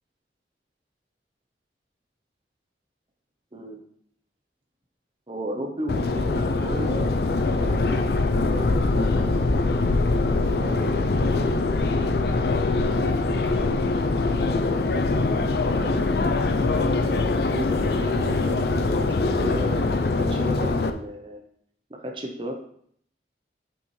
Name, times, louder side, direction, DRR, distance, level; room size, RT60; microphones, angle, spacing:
voice 1, 5.3-8.1 8.4-9.3 10.3-11.0 15.7-21.4 21.9-22.5, right 1 dB, 30° right, 2 dB, 0.7 m, -35 dB
Subway metro underground, 5.9-20.9, left 3 dB, 60° left, 0.5 m, -23 dB
6.9 x 5.6 x 3.2 m, 0.65 s
head